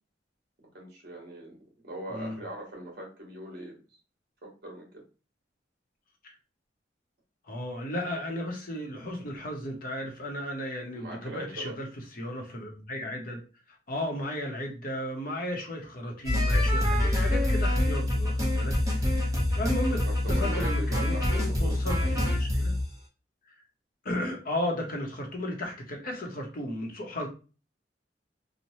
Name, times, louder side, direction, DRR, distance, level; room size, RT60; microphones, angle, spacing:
voice 1, 0.7-1.6 1.8-3.8 4.4-5.0 11.0-11.7 19.9-22.1, right 1 dB, 60° right, 0 dB, 1.2 m, -41 dB
voice 2, 7.4-11.9 12.1-13.4 13.7-20.0 20.3-22.8 24.0-27.3, left 1 dB, 50° left, 2 dB, 0.8 m, -35 dB
sound 1, 16.2-22.8, left 1 dB, 20° right, 0.9 m, -26 dB
3.0 x 2.1 x 2.7 m, 0.33 s
head